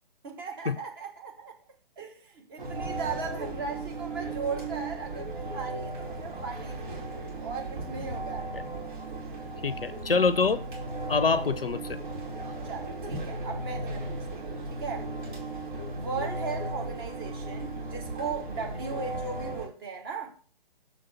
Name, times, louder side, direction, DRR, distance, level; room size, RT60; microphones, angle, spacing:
voice 1, 0.2-1.6 2.0-7.1 7.4-8.5 12.6-15.1 15.9-20.3, right 5 dB, 25° right, 1.2 m, -37 dB
sound 1, 2.6-19.7, right 2 dB, 60° right, 2.6 m, -36 dB
voice 2, 9.6-10.6 11.1-12.0, left 4 dB, 75° left, 0.7 m, -25 dB
6.4 x 4.1 x 5.8 m
figure-of-eight pair, 140°, 29 cm